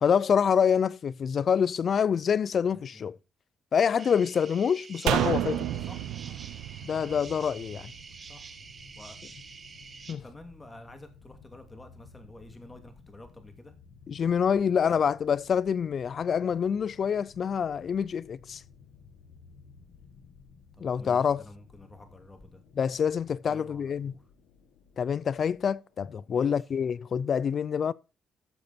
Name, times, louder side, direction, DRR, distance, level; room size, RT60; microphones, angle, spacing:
voice 1, 0.0-3.2 3.7-5.7 6.8-7.9 10.1-10.2 14.1-18.6 20.8-21.4 22.8-24.1 25.0-27.9, left 7 dB, 50° left, 0.5 m, -26 dB
voice 2, 2.7-3.1 5.8-6.1 8.2-8.5 9.0-9.2 10.1-13.7 14.8-15.0 20.7-22.6 23.5-24.2 26.3-26.7, left 1 dB, 15° left, 2.7 m, -50 dB
sound 1, 4.0-10.1, right 5 dB, 40° right, 1.8 m, -47 dB
sound 2, 5.1-8.4 8.7-8.8, right 12 dB, 90° right, 0.8 m, -30 dB
sound 3, 7.2-26.0, left 5 dB, 85° left, 1.6 m, -56 dB
13.5 x 6.7 x 4.4 m
cardioid pair, 90°, 0 cm